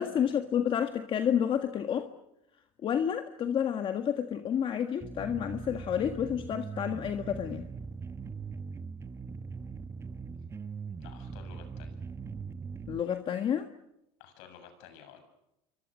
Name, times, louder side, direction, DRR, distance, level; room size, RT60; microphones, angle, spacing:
voice 1, 0.0-2.1 2.8-7.7 12.9-13.7, left 8 dB, 35° left, 7 dB, 1.6 m, -30 dB
sound 1, 5.0-13.0, right 5 dB, 20° right, 1.1 m, -41 dB
voice 2, 11.0-12.0 14.2-15.2, left 8 dB, 75° left, 7 dB, 7.4 m, -52 dB
29.0 x 24.0 x 6.4 m, 0.85 s
cardioid pair, 130°, 14 cm